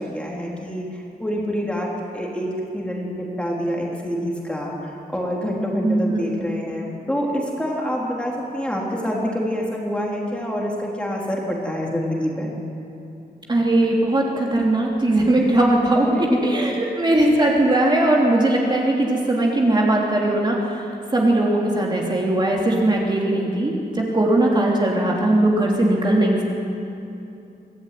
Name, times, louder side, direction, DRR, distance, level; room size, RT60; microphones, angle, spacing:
voice 1, 0.0-12.5 16.1-16.6, equal, 5° left, -3 dB, 3.7 m, -26 dB
voice 2, 5.8-6.3 13.5-26.4, right 1 dB, 25° right, -2 dB, 3.1 m, -19 dB
24.5 x 16.5 x 9.3 m, 2.7 s
wide cardioid pair, 160°, 17 cm